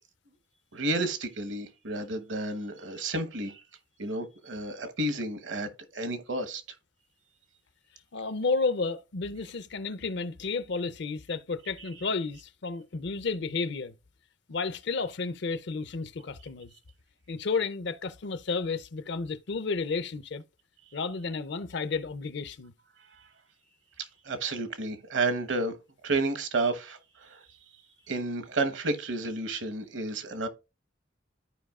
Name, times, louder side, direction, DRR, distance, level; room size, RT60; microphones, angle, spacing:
voice 1, 0.7-3.6 4.0-6.6 24.0-25.7 26.0-27.4 28.1-30.5, right 2 dB, 75° right, 1.1 m, -31 dB
voice 2, 8.1-13.9 14.5-16.7 17.3-20.4 20.9-22.7, left 4 dB, 65° left, 0.6 m, -32 dB
13.5 x 4.8 x 2.4 m
head